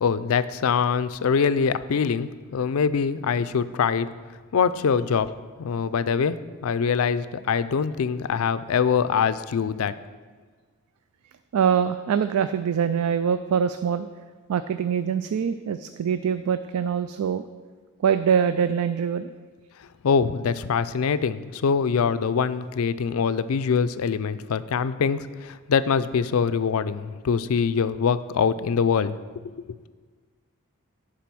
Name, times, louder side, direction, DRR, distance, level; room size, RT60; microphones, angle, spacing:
voice 1, 0.0-4.1 4.5-5.3 5.6-9.9 20.0-29.2, left 6 dB, 75° left, 14 dB, 0.4 m, -24 dB
voice 2, 11.5-14.1 14.5-17.5 18.0-19.3, right 7 dB, 85° right, 11 dB, 0.4 m, -24 dB
10.5 x 4.9 x 6.0 m, 1.5 s
head